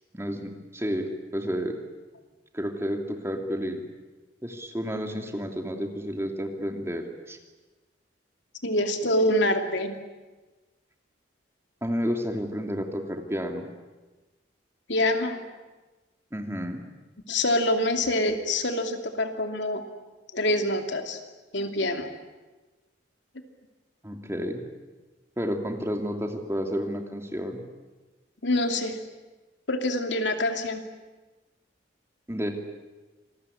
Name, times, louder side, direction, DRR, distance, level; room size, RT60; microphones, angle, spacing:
voice 1, 0.1-1.8 2.5-3.8 4.4-7.4 11.8-13.7 16.3-16.8 24.0-24.6 25.4-27.6 32.3-32.5, equal, 15° right, 3 dB, 2.7 m, -31 dB
voice 2, 8.6-9.9 14.9-15.5 17.3-19.8 20.3-21.2 21.5-22.1 28.4-29.0 29.7-30.9, left 1 dB, 75° left, 5 dB, 2.8 m, -25 dB
27.0 x 21.0 x 10.0 m, 1.2 s
head